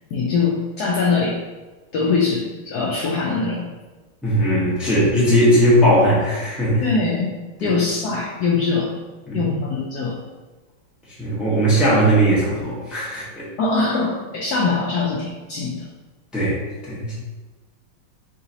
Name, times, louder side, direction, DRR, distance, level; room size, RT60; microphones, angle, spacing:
voice 1, 0.1-1.4 1.9-3.7 6.8-7.3 7.6-8.9 9.3-10.2 13.6-15.9, left 4 dB, 80° left, -3 dB, 0.8 m, -22 dB
voice 2, 4.2-6.8 7.6-7.7 9.3-9.4 11.2-13.5 16.3-17.2, equal, ahead, -8 dB, 0.6 m, -18 dB
3.9 x 3.8 x 2.7 m, 1.2 s
omnidirectional pair, 2.2 m